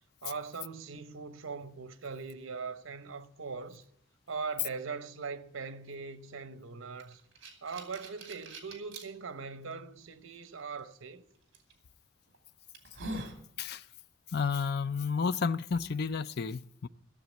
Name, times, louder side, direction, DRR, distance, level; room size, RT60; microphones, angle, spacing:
voice 1, 0.2-3.8 4.3-7.2 7.6-11.3, right 4 dB, 85° right, 0.9 m, -41 dB
sound 1, 7.0-9.1 9.7-9.8 11.5-11.7 12.3-12.4 12.7-13.4, right 1 dB, 60° right, 2.7 m, -42 dB
voice 2, 14.3-16.9, left 5 dB, 50° left, 0.5 m, -31 dB
15.5 x 7.3 x 9.2 m
head